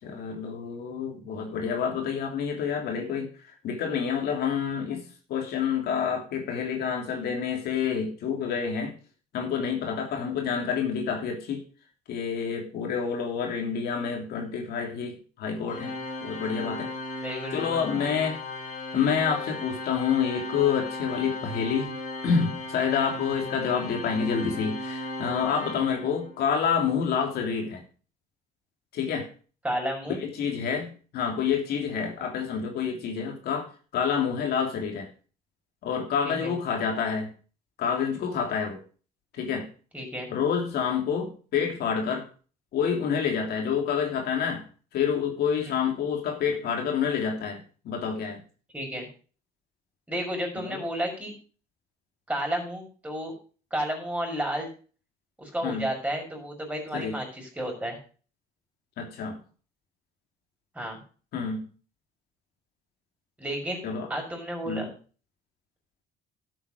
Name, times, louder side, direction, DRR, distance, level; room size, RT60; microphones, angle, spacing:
voice 1, 0.0-8.9 9.3-11.6 12.1-15.9 16.2-16.9 17.5-18.4 18.9-21.9 22.2-27.8 28.9-29.3 30.2-35.1 35.8-37.3 37.8-38.8 39.3-39.7 40.3-42.3 42.7-44.6 44.9-48.4 50.6-50.8 55.6-55.9 56.9-57.2 59.0-59.4 61.3-61.7 63.8-64.1 64.6-64.9, left 7 dB, 70° left, 2 dB, 3.1 m, -28 dB
Organ, 15.7-26.5, left 2 dB, 50° left, 4.4 m, -36 dB
voice 2, 17.2-17.8 29.6-30.2 36.2-36.5 39.9-40.3 45.6-45.7 48.7-49.1 50.1-51.3 52.3-53.3 53.7-54.7 55.4-58.0 60.7-61.0 63.4-63.8 64.1-64.9, equal, 10° right, 1 dB, 6.0 m, -32 dB
12.0 x 8.1 x 5.1 m, 0.38 s
cardioid pair, 110°, 17 cm